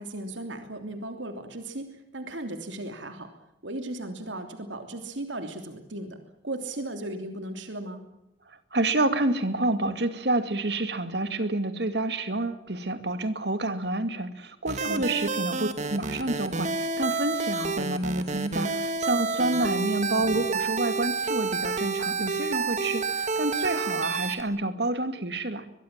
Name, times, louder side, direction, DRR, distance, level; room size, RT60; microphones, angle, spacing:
voice 1, 0.0-3.3 3.6-6.2 6.4-8.0 14.8-15.1 19.4-19.8, right 1 dB, 85° right, 6 dB, 3.1 m, -36 dB
voice 2, 8.7-25.7, right 2 dB, 60° right, 10 dB, 2.4 m, -28 dB
sound 1, 14.7-24.4, right 4 dB, 40° right, 2.0 m, -29 dB
23.0 x 23.0 x 7.5 m, 0.84 s
head